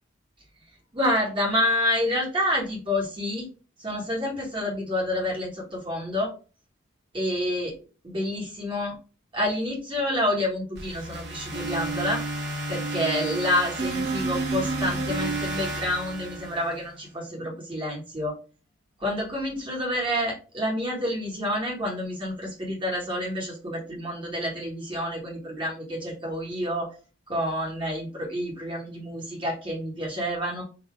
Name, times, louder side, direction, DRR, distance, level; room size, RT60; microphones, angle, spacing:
voice 1, 0.9-3.5 3.8-6.3 7.1-7.7 8.0-9.0 9.3-12.2 12.7-18.4 19.0-26.9 27.3-30.6, left 1 dB, 25° right, -3 dB, 1.4 m, -28 dB
sound 1, 10.8-16.9, right 2 dB, 55° right, 1.6 m, -31 dB
3.9 x 2.7 x 4.6 m, 0.35 s
head